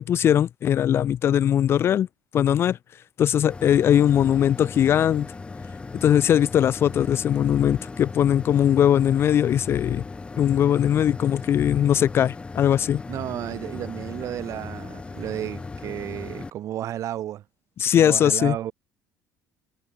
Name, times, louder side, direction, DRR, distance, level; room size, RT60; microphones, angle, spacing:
voice 1, 0.0-2.1 2.3-2.8 3.2-5.3 6.0-10.0 10.4-13.0 17.8-18.6, left 10 dB, 35° left, 0.4 m, -20 dB
sound 1, 3.5-16.5, left 3 dB, 15° left, 5.0 m, -38 dB
voice 2, 13.1-17.4 18.0-18.7, right 12 dB, 50° right, 3.7 m, -32 dB
cardioid pair, 150°, 7 cm